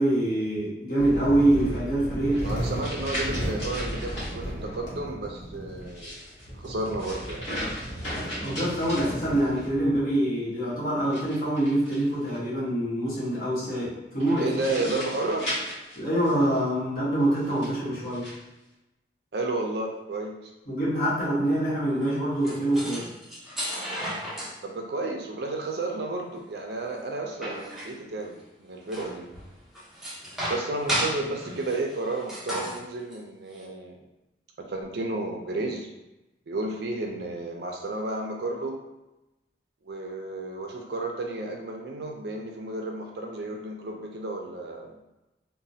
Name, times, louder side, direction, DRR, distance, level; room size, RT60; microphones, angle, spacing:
voice 1, 0.0-2.5 8.3-14.5 15.9-18.3 20.7-23.1, right 1 dB, 55° left, -9 dB, 1.3 m, -25 dB
sound 1, 1.0-10.0, equal, 75° left, 0.8 m, -35 dB
sound 2, 2.3-4.3 5.8-9.7 11.0-12.4 14.2-16.6 17.4-18.4, equal, 35° left, 1.5 m, -37 dB
voice 2, 2.4-6.2 6.5-7.5 14.4-15.5 19.3-20.5 24.6-29.3 30.4-34.0 34.6-35.9 36.5-38.8 39.8-44.9, right 2 dB, 60° right, 1 dB, 0.4 m, -32 dB
sound 3, 22.0-22.1 22.4-24.6 26.4-28.5 28.8-33.1 33.5-33.6, equal, ahead, 0.5 m, -34 dB
3.1 x 2.2 x 2.7 m, 0.95 s
head